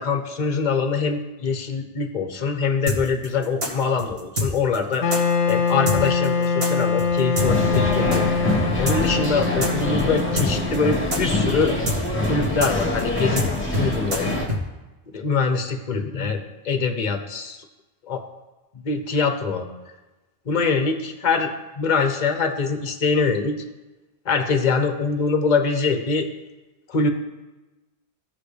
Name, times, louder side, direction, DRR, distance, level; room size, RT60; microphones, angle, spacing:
voice 1, 0.0-5.2 5.5-11.7 12.3-13.4 13.8-14.3 15.1-16.4 16.6-17.6 18.1-18.2 18.8-19.7 20.5-21.5 21.8-23.5 24.2-26.3 26.9-27.1, left 4 dB, 40° left, 5 dB, 1.0 m, -23 dB
sound 1, 2.9-8.2 8.5-8.6 8.9-14.6, left 1 dB, 60° right, 2.2 m, -26 dB
Wind instrument woodwind instrument, 5.0-12.0, left 5 dB, 80° left, 0.9 m, -24 dB
sound 2, 7.4-14.5, left 1 dB, 10° left, 1.5 m, -25 dB
16.5 x 5.8 x 3.4 m, 1.1 s
omnidirectional pair, 1.2 m